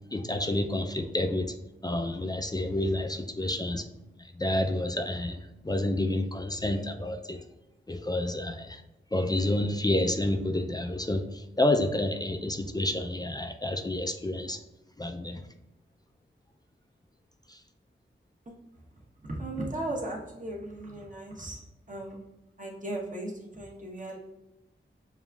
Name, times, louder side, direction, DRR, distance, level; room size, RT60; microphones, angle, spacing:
voice 1, 0.1-1.5 1.8-3.9 4.2-7.4 7.9-8.8 9.1-14.6 15.0-15.4 17.5-17.6, left 1 dB, 20° left, 5 dB, 0.3 m, -29 dB
voice 2, 19.2-21.6 21.9-22.2 22.6-24.2, right 1 dB, 40° right, -2 dB, 1.0 m, -36 dB
7.0 x 2.3 x 2.3 m, 0.95 s
wide cardioid pair, 60°, 21 cm